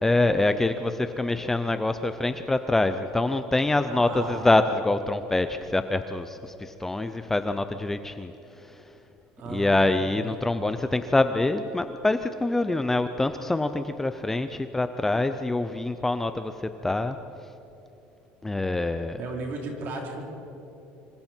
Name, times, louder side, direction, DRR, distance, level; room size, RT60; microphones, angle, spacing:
voice 1, 0.0-8.8 9.5-17.2 18.4-19.2, left 2 dB, 10° left, 9 dB, 0.6 m, -25 dB
voice 2, 3.9-4.6 9.4-10.3 19.2-20.3, right 2 dB, 45° right, 0 dB, 4.2 m, -36 dB
26.0 x 25.5 x 4.5 m, 3.0 s
cardioid pair, 165°, 4 cm